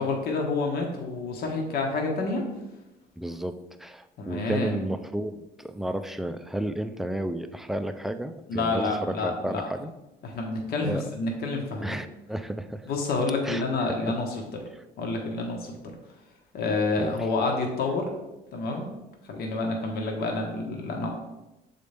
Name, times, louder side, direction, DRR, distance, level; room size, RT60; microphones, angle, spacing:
voice 1, 0.0-2.4 4.2-4.8 8.5-9.7 10.2-12.0 12.9-14.7 15.0-15.9 16.5-18.1 18.5-18.9 19.3-21.1, left 3 dB, 65° left, 1 dB, 1.2 m, -28 dB
voice 2, 3.2-9.9 10.8-11.0 11.8-12.9 13.4-13.6 14.0-14.1 17.0-17.2, right 1 dB, ahead, 8 dB, 0.3 m, -32 dB
6.8 x 4.2 x 3.4 m, 0.97 s
cardioid pair, 110°, 17 cm